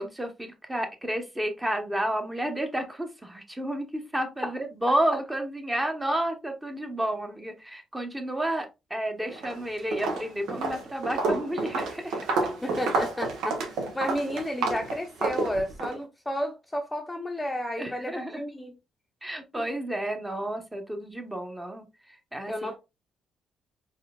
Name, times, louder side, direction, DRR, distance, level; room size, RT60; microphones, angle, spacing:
voice 1, 0.0-12.4 17.8-18.4 19.2-22.5, right 1 dB, 15° right, 1.0 m, -31 dB
Walk footsteps, 9.3-9.6 9.9-16.0, right 3 dB, 85° right, 1.1 m, -29 dB
voice 2, 12.6-18.7 22.5-22.8, equal, 15° left, 0.7 m, -32 dB
4.2 x 3.4 x 2.3 m
cardioid pair, 90°, 0 cm